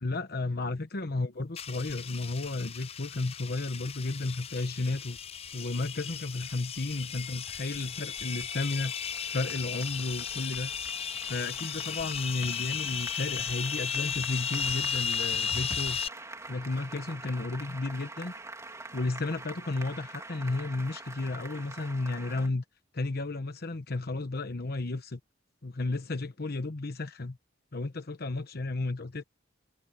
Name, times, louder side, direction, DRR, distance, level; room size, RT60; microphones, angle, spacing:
voice 1, 0.0-5.2 5.5-8.9 9.3-10.7 11.2-16.0 16.5-18.3 18.9-22.6 22.9-25.2 25.6-27.4 27.7-29.2, left 2 dB, 55° left, 1.0 m, -33 dB
sound 1, 1.6-16.1, left 7 dB, 30° left, 0.6 m, -35 dB
Applause, 7.2-22.5, right 2 dB, 15° right, 3.1 m, -46 dB
head